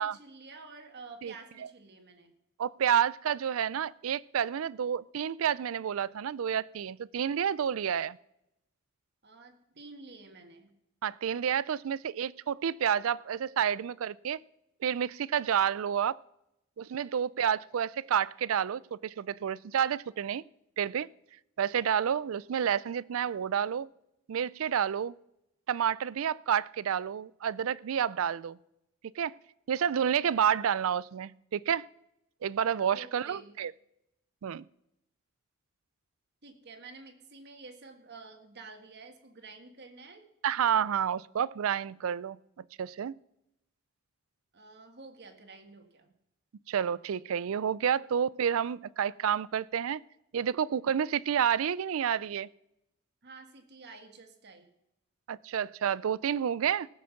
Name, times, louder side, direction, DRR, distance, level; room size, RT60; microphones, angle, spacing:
voice 1, 0.0-2.3 9.2-10.7 32.9-33.6 36.4-40.3 44.5-46.1 53.2-54.7, right 3 dB, 50° right, 1.7 m, -50 dB
voice 2, 2.6-8.2 11.0-14.4 14.8-16.2 16.8-20.4 20.8-21.1 21.6-23.9 24.3-25.1 25.7-28.6 29.2-29.3 29.7-31.9 32.4-33.7 34.4-34.6 40.4-43.2 46.7-50.0 50.3-52.5 55.3-56.9, right 8 dB, 70° right, 0.4 m, -29 dB
18.5 x 7.6 x 5.9 m
head